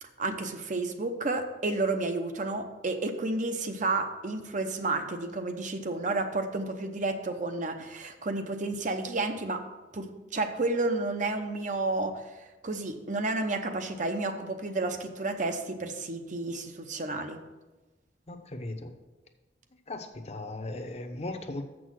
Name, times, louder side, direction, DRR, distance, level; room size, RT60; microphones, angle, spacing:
voice 1, 0.0-9.6 9.9-12.2 12.6-17.4, right 2 dB, 45° right, 7 dB, 0.8 m, -31 dB
voice 2, 18.3-18.9 19.9-21.6, left 2 dB, 35° left, 5 dB, 0.8 m, -37 dB
7.2 x 6.2 x 6.2 m, 1.1 s
head